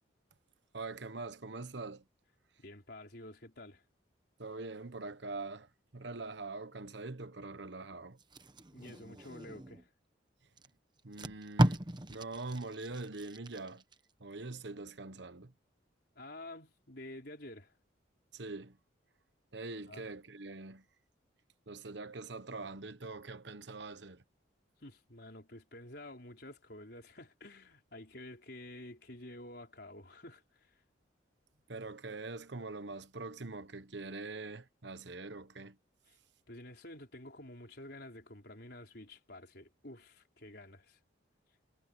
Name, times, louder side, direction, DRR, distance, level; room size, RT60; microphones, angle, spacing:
voice 1, 0.7-2.0 4.4-8.2 11.0-11.8 12.1-13.8 14.2-15.5 18.3-18.8 19.5-20.8 21.7-24.2 31.7-35.8, right 3 dB, 65° right, 1.2 m, -43 dB
voice 2, 2.6-3.8 8.7-9.9 16.1-17.7 19.9-20.1 24.8-30.7 36.1-36.2 36.5-41.0, left 1 dB, 55° left, 5.0 m, -50 dB
Packing tape duct tape, 8.2-9.9 10.6-10.7 11.0-14.0 14.4-14.6, right 1 dB, 25° right, 1.0 m, -35 dB
head